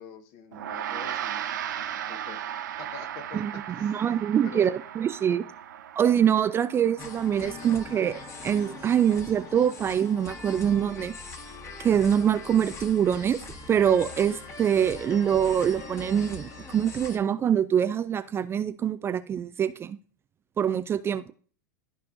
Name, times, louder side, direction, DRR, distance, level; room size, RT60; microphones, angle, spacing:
voice 1, 0.0-1.4 2.0-3.4 3.7-4.1 4.4-4.7, left 5 dB, 55° left, 1.4 m, -45 dB
Gong, 0.5-10.1, right 10 dB, 70° right, 0.8 m, -37 dB
voice 2, 3.8-5.4 6.0-11.2 11.8-13.4 13.7-20.0 20.6-21.3, right 9 dB, 25° right, 0.4 m, -24 dB
sound 1, 7.0-17.2, left 3 dB, 30° left, 1.5 m, -41 dB
13.5 x 4.5 x 2.6 m
hypercardioid pair, 95°, 10 cm